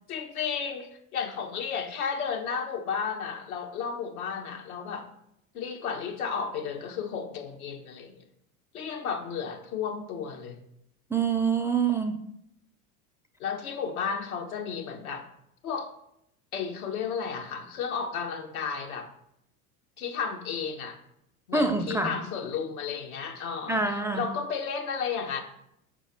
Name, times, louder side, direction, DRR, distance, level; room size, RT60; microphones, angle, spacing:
voice 1, 0.1-5.1 5.5-8.2 8.7-10.6 13.4-15.3 15.6-15.9 16.5-19.1 20.0-21.0 21.5-25.4, left 6 dB, 70° left, 1.3 m, -33 dB
voice 2, 11.1-12.2 21.5-22.1 23.7-24.3, right 4 dB, 5° right, 0.5 m, -26 dB
5.8 x 4.5 x 5.8 m
hypercardioid pair, 80°, 44 cm